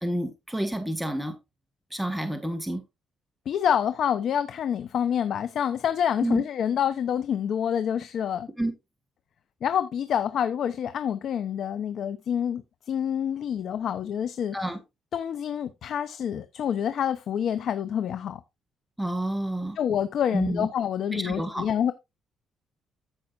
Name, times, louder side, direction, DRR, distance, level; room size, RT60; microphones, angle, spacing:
voice 1, 0.0-1.3 1.9-2.8 6.2-6.4 8.6-8.7 14.5-14.8 19.0-19.8 20.3-20.7 21.1-21.6, right 1 dB, ahead, 1.7 m, -29 dB
voice 2, 3.5-8.5 9.6-14.6 15.1-18.4 19.8-21.9, left 9 dB, 65° left, 0.7 m, -27 dB
14.5 x 5.6 x 2.5 m
cardioid pair, 90°, 0 cm